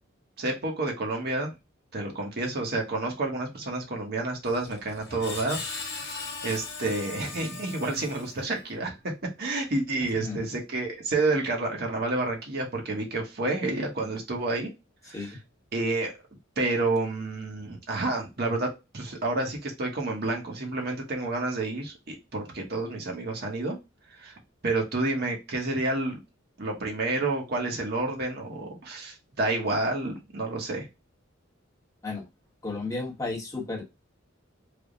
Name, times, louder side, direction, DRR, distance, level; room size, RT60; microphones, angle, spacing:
voice 1, 0.4-1.5 1.9-14.7 15.1-15.4 15.7-16.1 16.6-23.8 24.2-24.3 24.6-26.2 26.6-30.9, right 2 dB, 55° right, 1.0 m, -29 dB
Screech, 4.4-8.7, left 4 dB, 55° left, 1.1 m, -39 dB
voice 2, 10.2-10.5 15.1-15.4 32.0-32.3 32.6-33.8, left 3 dB, 15° left, 0.9 m, -33 dB
3.4 x 2.1 x 3.7 m
head